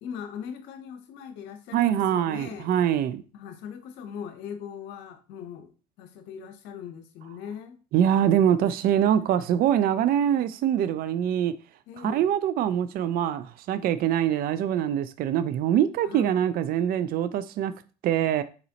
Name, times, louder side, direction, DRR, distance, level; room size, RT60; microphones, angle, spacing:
voice 1, 0.0-2.7 3.3-5.7 6.0-7.8 9.2-9.4 11.9-12.3 16.0-16.3, left 7 dB, 70° left, 0.9 m, -39 dB
voice 2, 1.7-3.2 7.9-11.5 12.0-17.7 18.0-18.4, right 10 dB, 50° right, 0.4 m, -24 dB
4.0 x 4.0 x 2.9 m
hypercardioid pair, 75°, 20 cm